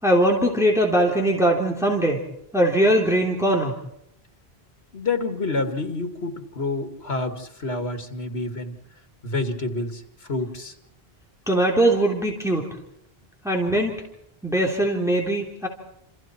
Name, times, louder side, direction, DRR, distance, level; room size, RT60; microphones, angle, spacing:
voice 1, 0.0-2.3 2.5-3.8 11.5-12.7 13.4-14.0 14.4-15.7, right 1 dB, 5° right, 0 dB, 3.3 m, -21 dB
voice 2, 4.9-8.7 9.2-10.0 10.3-10.7, left 3 dB, 80° left, 6 dB, 2.7 m, -28 dB
29.0 x 28.0 x 4.6 m, 0.76 s
omnidirectional pair, 1.1 m